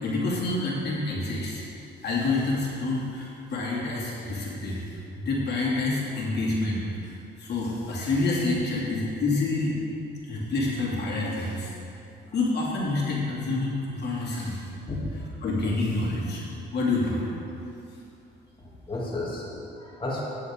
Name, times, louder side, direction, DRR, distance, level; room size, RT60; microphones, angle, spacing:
voice 1, 0.0-1.6 2.0-4.8 5.1-6.8 7.4-9.8 10.2-11.7 12.3-14.6 15.4-16.4 16.7-17.2, left 2 dB, 60° left, -5 dB, 2.7 m, -27 dB
voice 2, 14.9-15.3 18.9-20.2, left 2 dB, 25° left, -6 dB, 2.6 m, -32 dB
14.5 x 9.4 x 3.7 m, 2.7 s
cardioid pair, 90°, 20 cm